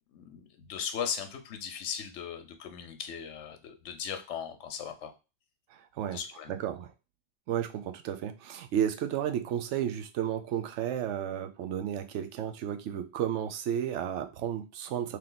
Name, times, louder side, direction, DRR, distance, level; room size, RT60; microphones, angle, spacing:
voice 1, 0.1-5.1 6.1-6.6, left 7 dB, 85° left, 7 dB, 1.0 m, -38 dB
voice 2, 5.7-6.2 6.5-6.9 7.5-15.2, right 10 dB, 85° right, 8 dB, 0.9 m, -32 dB
3.2 x 3.0 x 3.8 m, 0.29 s
omnidirectional pair, 1.2 m